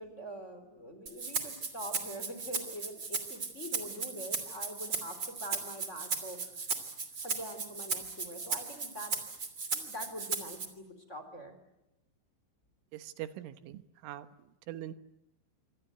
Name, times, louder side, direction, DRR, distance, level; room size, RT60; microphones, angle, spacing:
voice 1, 0.0-6.5 7.2-9.3 9.7-11.5, equal, 15° left, 8 dB, 3.7 m, -44 dB
Rattle (instrument), 1.1-10.7, right 4 dB, 30° right, 2.6 m, -37 dB
voice 2, 12.9-14.3 14.7-14.9, right 13 dB, 85° right, 11 dB, 3.7 m, -42 dB
27.0 x 25.5 x 8.0 m, 0.90 s
omnidirectional pair, 5.6 m